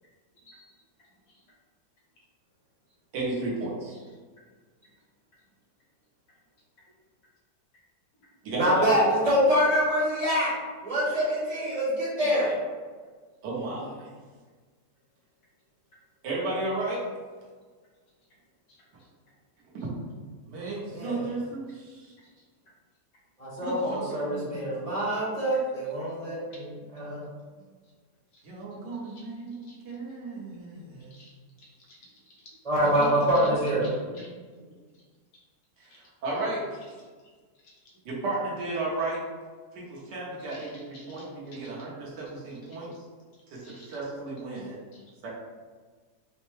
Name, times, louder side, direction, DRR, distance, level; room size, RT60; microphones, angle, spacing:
voice 1, 0.4-0.7 1.3-1.4 18.7-19.1 26.5-26.6 28.3-28.4 28.7-29.3 29.6-29.8 31.1-31.3 31.6-32.5 32.9-33.5 33.8-34.3 35.9-36.0 37.6-37.8 40.4-41.9 42.7-42.8 43.6-43.9 44.9-45.0, left 1 dB, 70° left, -4 dB, 1.4 m, -53 dB
voice 2, 3.1-4.0 8.4-8.8 11.1-11.2 13.4-14.1 16.2-17.0 20.5-22.1 23.6-25.2 28.4-31.1 32.8-33.5 33.8-34.4 35.8-36.8 38.0-39.2 39.7-42.9 43.5-44.7 45.2-45.3, right 2 dB, 80° right, -5 dB, 1.5 m, -34 dB
voice 3, 8.6-10.5 10.8-12.5 20.9-21.2 23.4-26.4 26.9-27.2 32.6-33.9, equal, 25° right, -8 dB, 1.0 m, -25 dB
4.4 x 2.1 x 3.1 m, 1.5 s
omnidirectional pair, 1.8 m